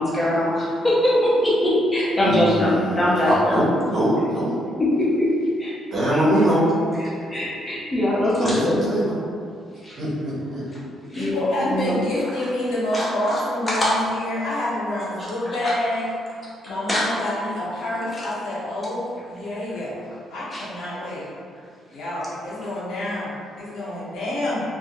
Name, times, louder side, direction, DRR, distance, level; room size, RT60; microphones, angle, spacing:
voice 1, 0.0-3.6 4.8-5.3 5.6-5.7 6.1-6.2 7.0-8.9 9.8-10.0 11.1-12.0 12.9-13.4 13.7-14.0 15.2-15.7 16.9-17.1 18.1-18.3 20.5-20.6, left 1 dB, 15° left, -7 dB, 0.7 m, -22 dB
voice 2, 2.2-4.6 5.9-6.7 8.4-9.1 10.0-10.6, right 1 dB, 60° right, -8 dB, 0.8 m, -22 dB
voice 3, 11.1-16.1 16.6-21.3 21.9-24.6, left 1 dB, 75° left, -8 dB, 0.9 m, -27 dB
2.3 x 2.0 x 2.8 m, 2.3 s
cardioid pair, 115°, 0 cm